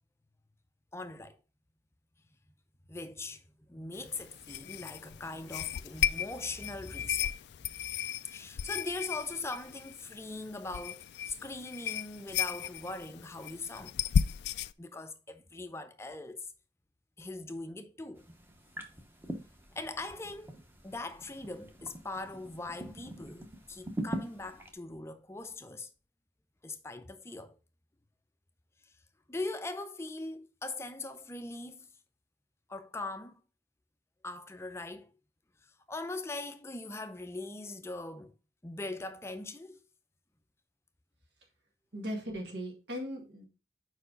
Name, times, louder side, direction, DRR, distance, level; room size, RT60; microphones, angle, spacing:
voice 1, 0.9-1.4 2.9-3.4 3.7-7.3 8.2-14.0 14.8-16.5 17.2-18.3 19.8-20.6 20.8-25.9 26.6-27.6 29.3-31.9 32.7-33.4 34.2-35.1 35.6-38.3 38.6-39.8, left 2 dB, 15° left, 0.5 m, -41 dB
sound 1, 3.9-14.7, left 8 dB, 70° left, 0.3 m, -35 dB
sound 2, 18.2-24.7, right 1 dB, 15° right, 0.9 m, -43 dB
voice 2, 41.9-43.5, equal, 75° right, 2.0 m, -38 dB
4.8 x 4.6 x 5.0 m
head